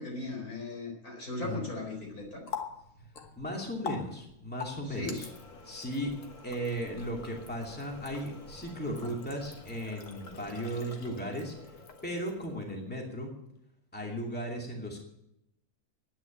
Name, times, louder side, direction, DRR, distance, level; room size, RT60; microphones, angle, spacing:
voice 1, 0.0-2.4 4.8-5.3, left 2 dB, 80° left, 0 dB, 5.2 m, -37 dB
Water tap faucet, 2.0-12.7, left 6 dB, 60° left, 1.7 m, -45 dB
voice 2, 3.4-5.3 5.6-6.1 6.4-11.5 12.0-13.3 13.9-15.0, equal, 5° left, -1 dB, 2.7 m, -36 dB
11.0 x 9.6 x 8.8 m, 0.83 s
omnidirectional pair, 1.5 m